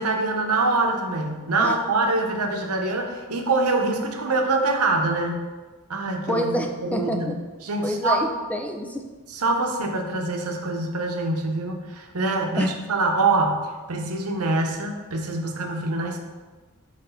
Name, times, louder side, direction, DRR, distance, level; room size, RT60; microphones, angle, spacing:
voice 1, 0.0-5.4 5.9-6.4 6.8-7.3 7.6-8.3 9.3-16.2, right 2 dB, 90° right, 3 dB, 0.8 m, -24 dB
voice 2, 6.3-7.4 7.8-9.0 12.6-12.7, equal, 5° left, 3 dB, 0.4 m, -27 dB
5.7 x 3.2 x 5.6 m, 1.3 s
head